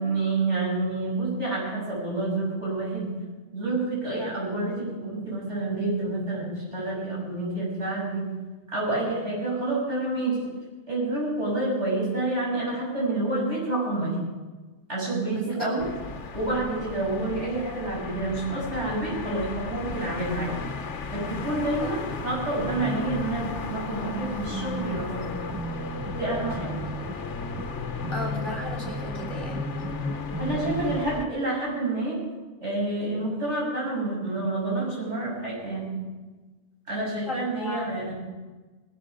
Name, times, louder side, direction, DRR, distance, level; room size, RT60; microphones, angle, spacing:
voice 1, 0.0-3.1 3.5-8.3 8.7-10.4 10.9-14.2 14.9-15.8 16.3-20.5 21.1-25.4 26.2-26.8 30.4-32.2 32.6-36.0 36.9-38.1, right 2 dB, 80° right, -5 dB, 7.3 m, -28 dB
voice 2, 15.3-15.7 21.8-21.9 28.1-29.6 37.3-37.9, left 1 dB, 25° left, 1 dB, 3.3 m, -35 dB
sound 1, 15.8-31.3, left 4 dB, 80° left, 1.4 m, -35 dB
sound 2, 24.1-31.0, right 1 dB, 25° right, 0.5 m, -36 dB
19.0 x 12.5 x 5.1 m, 1.3 s
omnidirectional pair, 1.2 m